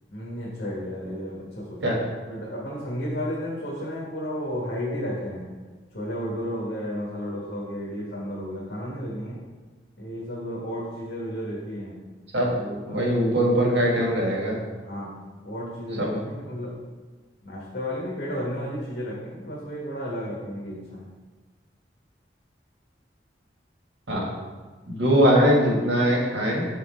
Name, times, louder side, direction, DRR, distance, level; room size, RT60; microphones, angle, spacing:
voice 1, 0.1-1.9 2.3-5.5 5.9-9.4 10.0-12.0 12.4-13.0 13.3-13.7 14.8-16.8 17.4-21.1, equal, 80° left, -6 dB, 1.3 m, -33 dB
voice 2, 12.3-14.6 16.0-16.2 24.1-24.3 24.9-26.7, equal, 90° right, -3 dB, 1.7 m, -21 dB
6.0 x 4.2 x 4.2 m, 1.3 s
head